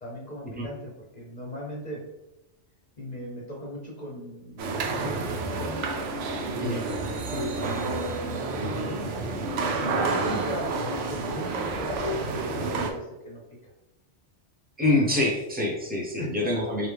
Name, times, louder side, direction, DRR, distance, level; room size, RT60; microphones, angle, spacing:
voice 1, 0.0-2.0 3.0-6.1 7.3-9.1 9.7-13.4 16.2-16.3, equal, 40° left, -2 dB, 0.8 m, -38 dB
sound 1, 4.6-12.9, right 3 dB, 90° right, 0.9 m, -29 dB
voice 2, 14.8-16.9, left 2 dB, 10° right, -3 dB, 0.7 m, -25 dB
4.8 x 2.4 x 3.4 m, 0.95 s
omnidirectional pair, 1.2 m